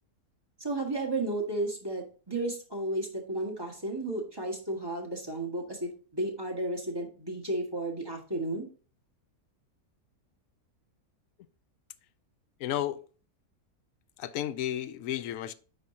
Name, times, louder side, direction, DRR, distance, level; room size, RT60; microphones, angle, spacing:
voice 1, 0.6-8.7, right 2 dB, 15° right, 1.8 m, -33 dB
voice 2, 12.6-13.0 14.2-15.5, left 12 dB, 70° left, 0.9 m, -32 dB
9.2 x 5.0 x 2.8 m
omnidirectional pair, 1.6 m